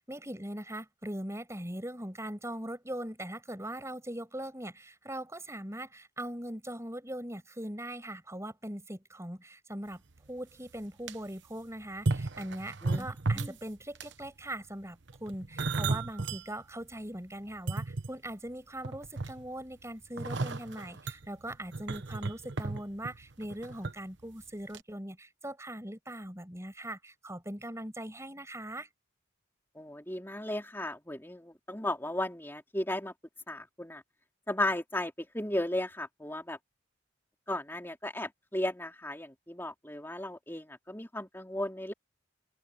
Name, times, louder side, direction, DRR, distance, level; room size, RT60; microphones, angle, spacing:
voice 1, 0.0-10.0 10.3-28.9, right 1 dB, 15° right, 6.5 m, -41 dB
sound 1, 10.2-10.3 10.7-11.1 11.9-13.6 13.9-14.3 15.1-16.4 16.9-17.0 17.5-18.5 18.8-19.6 20.2-23.9 24.2-24.4 24.7-24.8, right 3 dB, 65° right, 1.1 m, -34 dB
voice 2, 29.7-33.1 33.5-34.0 34.5-36.6 37.5-41.9, left 1 dB, 10° left, 3.1 m, -35 dB
open air
head